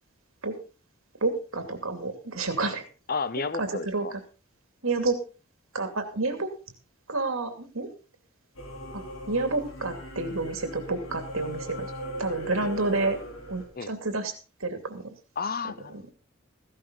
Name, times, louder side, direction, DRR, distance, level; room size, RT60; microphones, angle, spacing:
voice 1, 1.2-2.8 3.6-4.1 4.8-5.2 5.7-6.5 7.1-7.9 8.9-11.9 12.2-13.2 13.5-14.3 14.6-15.1, right 3 dB, 75° right, 7 dB, 2.7 m, -29 dB
voice 2, 3.1-4.1 12.6-12.7 13.8-13.9 15.4-16.1, left 4 dB, 45° left, 16 dB, 0.7 m, -32 dB
Singing / Musical instrument, 8.6-13.7, equal, 70° left, 4.2 m, -39 dB
15.5 x 11.5 x 4.1 m, 0.34 s
head